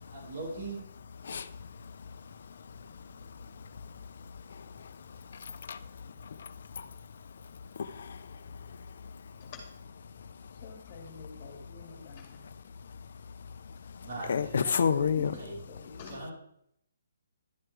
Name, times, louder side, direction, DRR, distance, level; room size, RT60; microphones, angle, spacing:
voice 1, 0.1-0.8 14.0-14.9 15.3-15.6 16.0-16.3, right 3 dB, 55° right, -3 dB, 4.4 m, -40 dB
voice 2, 1.2-6.9 7.8-9.5 10.2-10.3 12.4-12.5 13.7-15.3, left 6 dB, 60° left, 13 dB, 0.8 m, -35 dB
voice 3, 10.6-12.4 15.2-16.3, left 4 dB, 35° left, 2 dB, 2.2 m, -47 dB
12.0 x 7.7 x 3.4 m, 0.73 s
hypercardioid pair, 150°, 0 cm